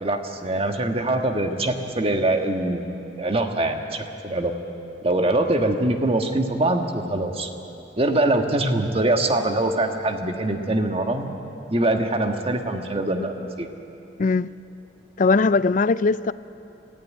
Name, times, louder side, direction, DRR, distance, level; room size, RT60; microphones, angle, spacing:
voice 1, 0.0-2.9 3.2-4.5 5.0-7.5 8.0-11.4 11.7-13.7, right 2 dB, 35° right, 1.5 m, -23 dB
voice 2, 15.2-16.3, left 4 dB, 45° left, 0.4 m, -19 dB
26.5 x 15.0 x 9.3 m
head